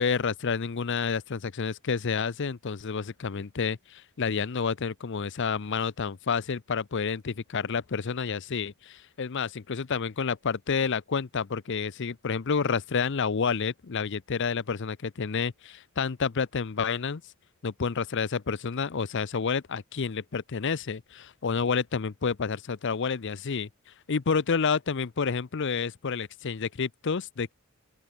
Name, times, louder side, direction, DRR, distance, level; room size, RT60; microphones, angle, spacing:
voice 1, 0.0-17.2 17.6-27.5, left 5 dB, 55° left, 0.6 m, -29 dB
open air
head